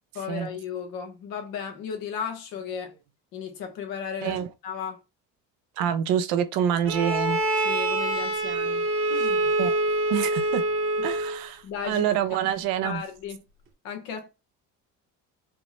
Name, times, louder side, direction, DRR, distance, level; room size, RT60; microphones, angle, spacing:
voice 1, 0.1-2.9 3.3-5.0 7.6-9.5 11.0-11.1 11.6-12.0 12.8-13.4 13.8-14.3, left 7 dB, 85° left, 1.0 m, -35 dB
voice 2, 5.8-7.4 9.6-9.7 10.1-10.6 11.0-13.0, right 9 dB, 75° right, 0.7 m, -26 dB
Bowed string instrument, 6.9-11.5, right 2 dB, 35° right, 0.9 m, -25 dB
4.6 x 2.0 x 2.9 m
supercardioid pair, 80°, 35 cm